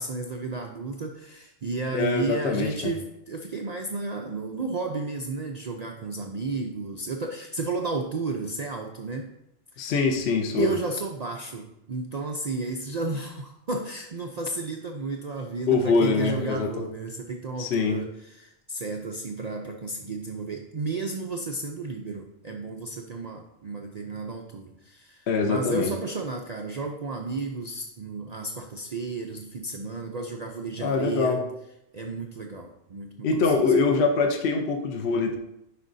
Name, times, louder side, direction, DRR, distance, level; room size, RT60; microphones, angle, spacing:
voice 1, 0.0-9.3 9.7-9.9 10.6-31.4 31.9-33.7, right 3 dB, 80° right, 2 dB, 0.3 m, -33 dB
voice 2, 1.9-2.9 9.8-10.7 15.7-16.8 17.6-18.0 25.3-25.9 30.8-31.4 33.2-35.4, left 4 dB, 55° left, 3 dB, 1.0 m, -24 dB
9.8 x 5.1 x 2.6 m, 0.83 s
omnidirectional pair, 1.4 m